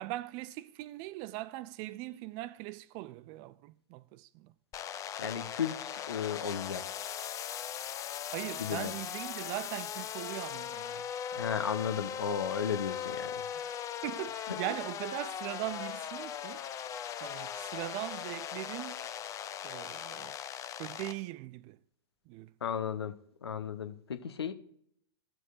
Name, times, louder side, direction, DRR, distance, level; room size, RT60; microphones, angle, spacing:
voice 1, 0.0-4.5 8.3-11.5 13.6-16.6 17.2-19.0 19.6-20.4 20.8-21.8 22.3-22.5, right 17 dB, 40° right, 0.4 m, -40 dB
sound 1, 4.7-21.1, left 9 dB, 25° left, 0.5 m, -39 dB
voice 2, 5.2-6.9 8.6-8.9 11.4-13.3 14.5-14.6 22.6-23.1 23.4-24.5, left 7 dB, 80° left, 0.8 m, -34 dB
14.5 x 6.2 x 2.5 m
hypercardioid pair, 105°, 13 cm